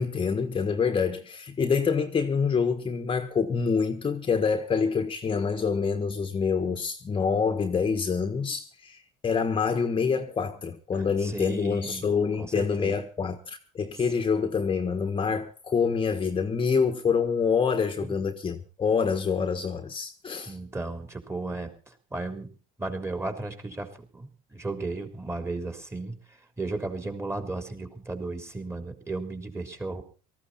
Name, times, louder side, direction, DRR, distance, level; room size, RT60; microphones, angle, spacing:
voice 1, 0.0-20.6, left 5 dB, 30° left, 1.5 m, -26 dB
voice 2, 11.2-12.0 12.4-13.0 18.0-18.1 20.5-22.5 22.8-26.2 26.6-30.0, right 3 dB, 15° right, 3.7 m, -34 dB
18.5 x 14.5 x 4.2 m
supercardioid pair, 85°, 18 cm